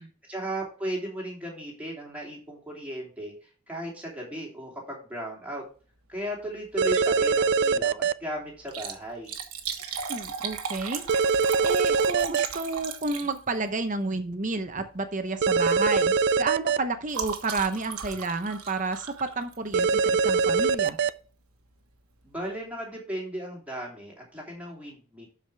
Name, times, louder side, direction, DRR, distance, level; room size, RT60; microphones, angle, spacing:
voice 1, 0.0-5.6 6.1-9.3 22.2-25.3, right 1 dB, 5° right, -3 dB, 3.0 m, -36 dB
sound 1, 6.8-8.1 11.1-12.5 15.4-16.8 19.7-21.1, right 5 dB, 50° right, 0.4 m, -22 dB
Liquid, 6.8-7.2 7.5-7.6 8.6-13.7 14.7-15.0 15.3-15.5 15.8-19.9 20.9-21.1 21.7-21.8 21.9-22.0, right 7 dB, 90° right, 1.4 m, -37 dB
voice 2, 10.1-11.0 11.6-21.0, right 3 dB, 35° right, 8 dB, 0.8 m, -31 dB
12.0 x 4.9 x 3.4 m, 0.39 s
head